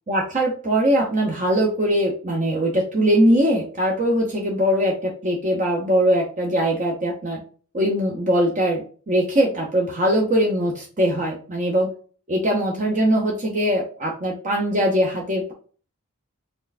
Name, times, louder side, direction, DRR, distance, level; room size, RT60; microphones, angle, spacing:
voice 1, 0.1-7.4 7.7-11.9 12.3-15.5, equal, 35° right, -1 dB, 0.7 m, -21 dB
4.3 x 3.2 x 2.5 m, 0.40 s
head